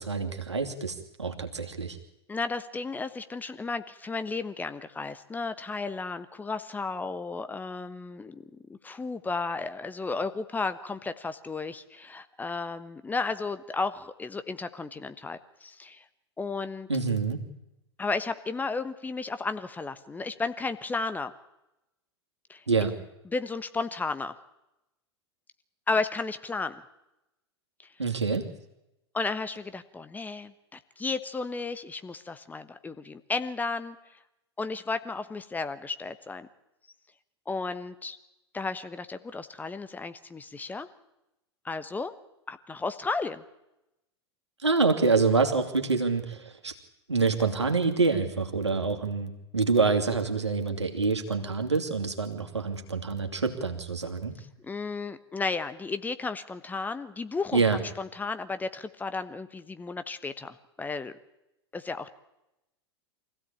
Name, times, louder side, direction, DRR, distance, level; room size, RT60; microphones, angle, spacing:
voice 1, 0.0-2.0 16.9-17.4 22.7-22.9 28.0-28.5 44.6-46.7 47.1-54.4 57.5-57.8, right 4 dB, 80° right, 4 dB, 2.8 m, -26 dB
voice 2, 2.3-8.4 8.7-16.0 16.4-16.9 18.0-21.3 22.5-22.6 23.2-24.3 25.9-26.8 29.1-34.0 34.6-36.5 37.5-38.2 38.5-40.9 41.6-42.1 42.5-43.4 54.4-61.1 61.7-62.1, left 4 dB, 10° left, 11 dB, 1.2 m, -33 dB
25.0 x 16.0 x 8.7 m, 0.91 s
figure-of-eight pair, 90°, 14 cm